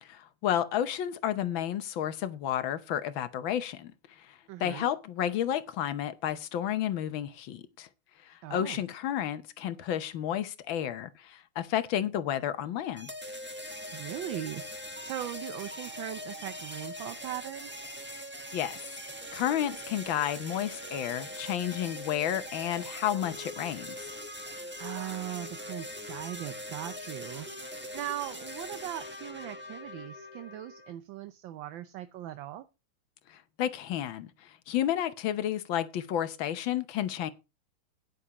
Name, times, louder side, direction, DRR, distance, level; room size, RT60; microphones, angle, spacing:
voice 1, 0.0-3.9 4.2-4.3 4.6-7.9 8.3-13.1 18.5-18.8 19.3-24.0 33.3-37.3, left 10 dB, 75° left, 1.6 m, -31 dB
voice 2, 4.5-4.9 8.4-8.8 13.9-17.9 24.8-27.5 27.9-32.6, right 13 dB, 75° right, 1.4 m, -39 dB
sound 1, 13.0-30.9, equal, 10° right, 0.8 m, -42 dB
14.0 x 9.9 x 2.9 m
omnidirectional pair, 2.2 m